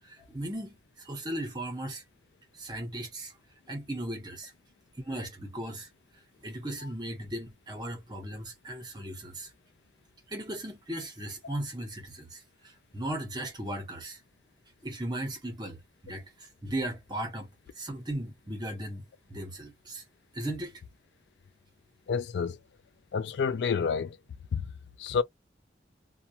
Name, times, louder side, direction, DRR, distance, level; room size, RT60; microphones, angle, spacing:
voice 1, 0.0-2.0 2.5-3.3 3.7-4.5 5.0-5.9 6.4-9.5 10.3-14.2 14.8-19.0 19.3-20.0 20.3-20.8, right 1 dB, 25° right, 0.8 m, -37 dB
voice 2, 22.1-22.6 23.1-24.2 24.5-24.7 25.0-25.2, left 6 dB, 75° left, 0.3 m, -29 dB
2.2 x 2.2 x 2.6 m
head